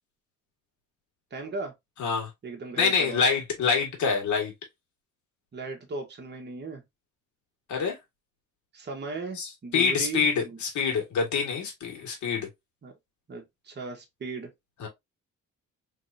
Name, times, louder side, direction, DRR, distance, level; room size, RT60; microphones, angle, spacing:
voice 1, 1.3-1.7 2.4-3.2 5.5-6.8 8.7-10.6 12.8-12.9 13.3-14.5, right 3 dB, 35° right, 1.3 m, -37 dB
voice 2, 2.0-2.3 2.8-4.5 7.7-8.0 9.4-12.5 14.8-14.9, left 5 dB, 70° left, 1.9 m, -26 dB
3.5 x 3.2 x 2.7 m
cardioid pair, 90°, 30 cm